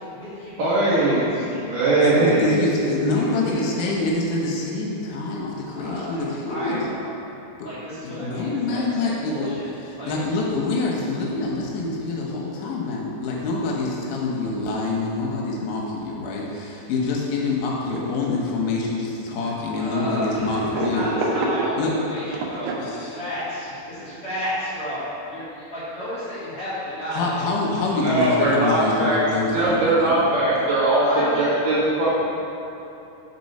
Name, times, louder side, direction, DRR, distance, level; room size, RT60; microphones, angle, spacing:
voice 1, 0.0-0.7 1.0-1.7 2.0-2.2 3.1-3.8 5.7-7.1 7.6-9.7 10.0-10.1 19.8-25.0 25.3-27.9 30.9-32.1, equal, 45° left, -12 dB, 1.9 m, -32 dB
voice 2, 0.6-2.7 28.0-29.2 29.5-31.0 31.4-32.1, right 2 dB, 60° right, -10 dB, 2.5 m, -20 dB
voice 3, 2.0-6.8 7.6-7.7 8.0-9.5 10.1-21.1 21.8-21.9 22.8-23.2 27.1-30.1, left 3 dB, 85° left, -3 dB, 3.5 m, -26 dB
sound 1, 16.5-16.6 16.9-17.0 17.8-18.5 19.4-19.8 20.5-22.8, right 2 dB, 80° right, 2.1 m, -27 dB
6.5 x 5.3 x 5.4 m, 3.0 s
omnidirectional pair, 5.2 m